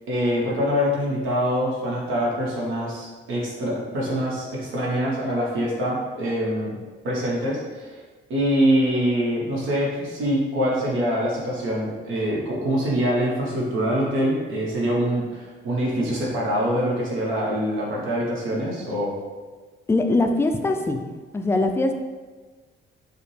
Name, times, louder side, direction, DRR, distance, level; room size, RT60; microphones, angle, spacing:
voice 1, 0.1-6.8 7.0-8.0 8.3-19.1, equal, 80° right, -4 dB, 1.0 m, -24 dB
voice 2, 19.9-21.0 21.3-21.9, left 2 dB, 15° left, 5 dB, 0.3 m, -21 dB
4.9 x 2.1 x 3.2 m, 1.4 s
cardioid pair, 90°, 20 cm